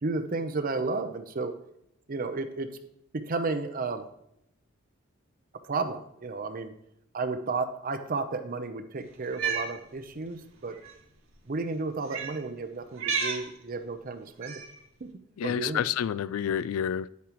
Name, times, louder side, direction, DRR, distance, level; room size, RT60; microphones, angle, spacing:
voice 1, 0.0-1.5 2.1-2.7 3.1-4.1 5.6-6.7 7.1-10.8 11.5-14.6 15.0-15.1 15.4-15.9, right 3 dB, 45° right, 8 dB, 0.6 m, -32 dB
Cat, 9.2-9.7 10.8-10.9 12.1-12.4 12.9-13.5 14.4-14.8, right 5 dB, 80° right, 1.6 m, -31 dB
voice 2, 15.4-17.1, left 8 dB, 85° left, 19 dB, 0.3 m, -29 dB
9.4 x 8.3 x 3.0 m, 0.78 s
head